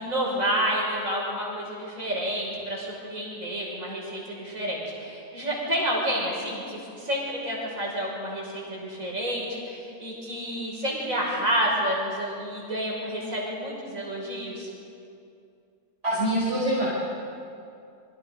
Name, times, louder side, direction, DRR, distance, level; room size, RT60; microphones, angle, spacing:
voice 1, 0.0-14.7, equal, 75° right, -3 dB, 6.4 m, -29 dB
voice 2, 16.0-16.9, right 1 dB, 55° right, -8 dB, 5.3 m, -24 dB
26.5 x 23.0 x 5.5 m, 2.6 s
omnidirectional pair, 1.4 m